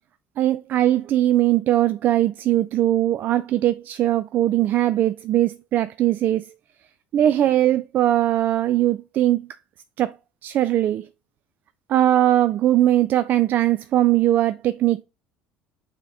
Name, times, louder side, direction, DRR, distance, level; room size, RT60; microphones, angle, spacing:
voice 1, 0.4-6.5 7.1-9.5 10.0-10.2 10.4-11.1 11.9-15.0, right 13 dB, 55° right, 0.3 m, -20 dB
6.5 x 3.6 x 4.1 m
hypercardioid pair, 75°, 4 cm